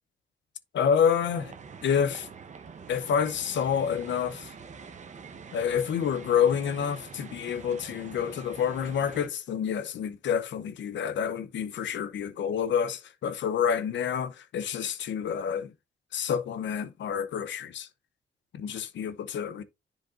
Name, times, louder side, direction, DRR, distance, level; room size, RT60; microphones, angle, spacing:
voice 1, 0.7-1.6 1.8-2.3 2.9-4.5 5.5-15.7 16.1-17.9 18.5-19.6, left 8 dB, 85° left, 0.8 m, -28 dB
sound 1, 1.2-9.3, right 5 dB, 40° right, 0.8 m, -45 dB
10.5 x 5.1 x 2.6 m
wide cardioid pair, 135°, 18 cm